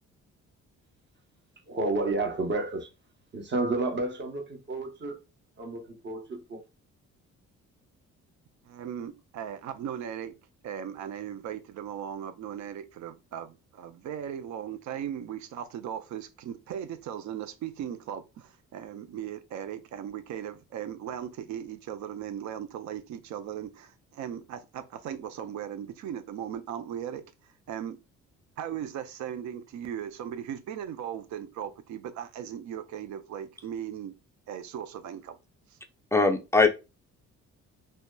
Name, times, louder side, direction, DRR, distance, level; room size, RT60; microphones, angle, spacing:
voice 1, 1.7-2.9 3.3-5.2 5.6-6.6, right 2 dB, 35° right, 0.7 m, -31 dB
voice 2, 8.6-10.3 10.6-28.0 28.6-34.1 34.5-35.4 35.7-35.8, right 9 dB, 70° right, 0.4 m, -38 dB
voice 3, 36.1-36.7, left 3 dB, 10° left, 0.3 m, -21 dB
2.7 x 2.1 x 2.2 m
cardioid pair, 90°, 30 cm